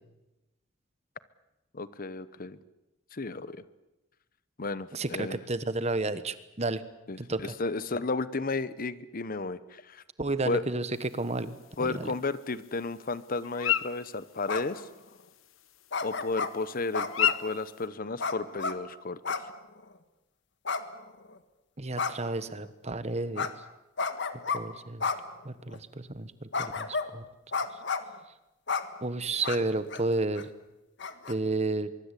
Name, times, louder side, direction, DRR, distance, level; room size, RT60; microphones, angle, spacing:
voice 1, 1.7-2.6 3.1-3.6 4.6-5.4 7.1-10.0 10.5-10.6 11.8-14.9 16.0-19.4, left 3 dB, 45° left, 15 dB, 0.9 m, -33 dB
voice 2, 4.9-6.8 7.2-7.5 10.2-12.2 21.8-23.5 24.5-25.0 25.4-27.2 29.0-30.5 31.3-31.9, right 2 dB, 35° right, 13 dB, 1.2 m, -32 dB
sound 1, 10.9-17.9, left 10 dB, 80° left, 1.1 m, -35 dB
sound 2, 14.5-14.8 15.9-16.5 16.9-17.5 18.2-18.8 19.2-19.5 19.8-19.9 20.6-21.4 22.0-22.3 23.4-23.5 24.0-24.6 25.0-25.2 25.7-25.8 26.5-27.1 27.5-28.1 28.7-28.8 29.4-29.6 29.9-30.0 30.3-30.4 31.0-31.3, left 4 dB, 60° left, 1.6 m, -31 dB
24.0 x 23.5 x 8.4 m, 0.97 s
head